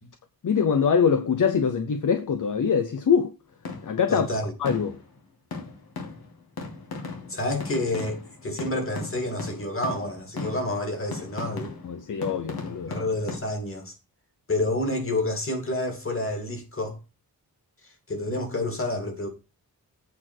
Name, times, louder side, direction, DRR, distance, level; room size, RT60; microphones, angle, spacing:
voice 1, 0.4-3.3 3.8-4.3 4.6-5.0 11.8-12.9, left 6 dB, 55° left, 0.9 m, -23 dB
sound 1, 3.7-4.1 4.7-5.2 5.5-13.4, left 4 dB, 85° left, 2.6 m, -37 dB
voice 2, 4.1-4.5 7.3-11.7 12.9-13.9 14.5-17.0 18.1-19.3, left 1 dB, 35° left, 2.5 m, -29 dB
8.5 x 4.6 x 6.2 m
wide cardioid pair, 160°, 36 cm